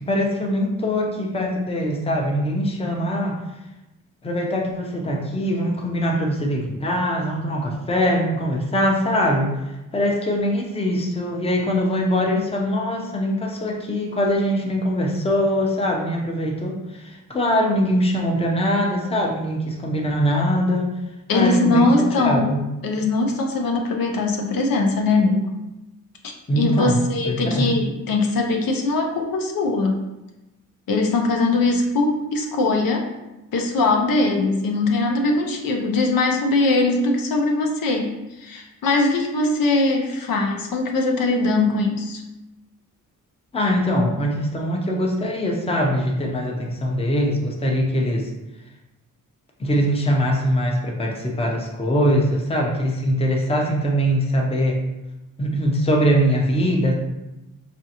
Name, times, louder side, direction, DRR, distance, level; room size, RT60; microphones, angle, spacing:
voice 1, 0.0-3.4 4.2-9.5 9.9-20.9 21.3-21.9 22.2-22.6 26.5-27.0 27.2-27.7 43.5-48.3 49.6-54.8 55.4-56.9, equal, 20° left, 0 dB, 0.6 m, -22 dB
voice 2, 21.3-22.6 22.8-25.5 26.2-30.0 30.9-33.1 33.5-42.2, left 2 dB, 85° left, 2 dB, 0.7 m, -21 dB
5.1 x 2.4 x 2.8 m, 0.99 s
wide cardioid pair, 120°, 33 cm